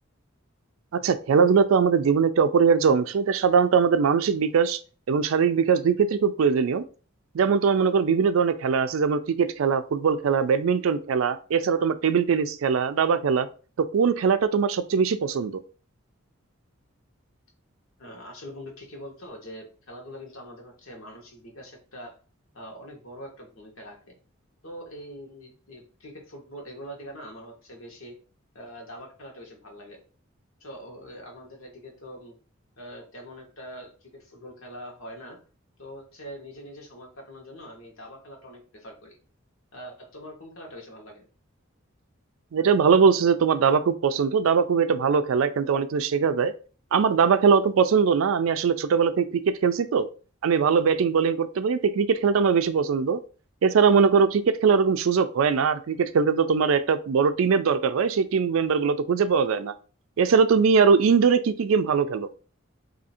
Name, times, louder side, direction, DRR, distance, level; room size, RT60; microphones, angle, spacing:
voice 1, 0.9-4.8 5.1-6.8 7.3-13.5 13.8-15.6 42.5-46.5 46.9-50.1 50.4-53.2 53.6-59.7 60.2-62.3, right 6 dB, 75° right, 12 dB, 0.4 m, -21 dB
voice 2, 18.0-22.2 22.5-24.1 24.6-28.1 28.5-30.0 30.6-32.4 32.8-35.4 35.8-39.2 39.7-41.2, equal, 75° left, 0 dB, 1.2 m, -43 dB
2.7 x 2.6 x 4.2 m, 0.37 s
head